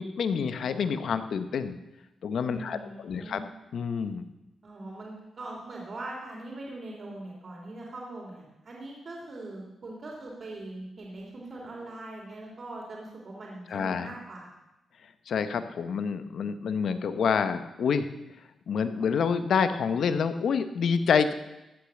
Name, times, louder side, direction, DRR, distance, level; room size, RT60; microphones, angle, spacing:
voice 1, 0.0-1.8 2.2-2.8 3.0-3.4 3.7-4.2 13.7-14.1 15.3-18.1 18.7-21.3, left 6 dB, 65° left, 10 dB, 1.0 m, -27 dB
voice 2, 2.5-3.4 4.6-14.5, right 2 dB, 45° right, -2 dB, 3.2 m, -41 dB
15.5 x 8.4 x 7.2 m, 0.96 s
cardioid pair, 125°, 0 cm